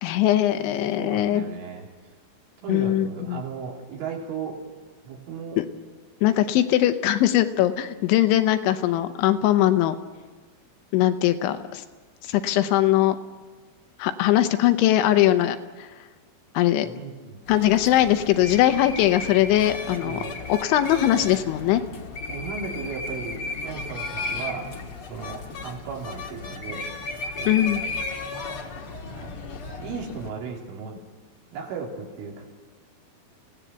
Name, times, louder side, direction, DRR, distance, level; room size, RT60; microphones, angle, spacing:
voice 1, 0.0-1.4 2.7-3.4 5.6-5.7 6.2-10.0 10.9-11.8 12.3-13.2 14.0-15.6 16.5-16.9 17.5-20.2 20.5-21.8 27.5-27.8, left 13 dB, 80° left, 9 dB, 3.2 m, -21 dB
voice 2, 0.6-1.9 2.6-4.6 5.1-5.6 16.8-17.4 20.0-20.5 22.3-24.7 25.1-26.9 27.4-27.7 29.2-31.0 31.5-32.4, right 5 dB, 85° right, -2 dB, 5.7 m, -36 dB
sound 1, 17.5-30.3, left 3 dB, 55° left, 1.6 m, -35 dB
27.0 x 17.5 x 8.1 m, 1.4 s
omnidirectional pair, 5.5 m